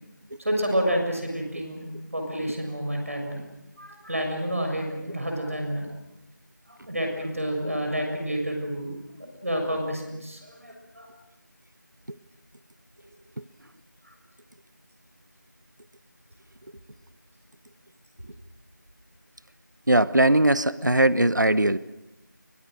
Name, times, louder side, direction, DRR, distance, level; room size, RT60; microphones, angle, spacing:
voice 1, 0.4-1.8 2.1-3.4 3.8-5.9 6.7-8.9 9.4-11.1 14.0-14.1, equal, 45° right, 2 dB, 6.7 m, -29 dB
voice 2, 19.9-21.8, right 1 dB, 65° right, 16 dB, 0.9 m, -20 dB
29.5 x 23.5 x 6.5 m, 0.94 s
figure-of-eight pair, 180°, 11 cm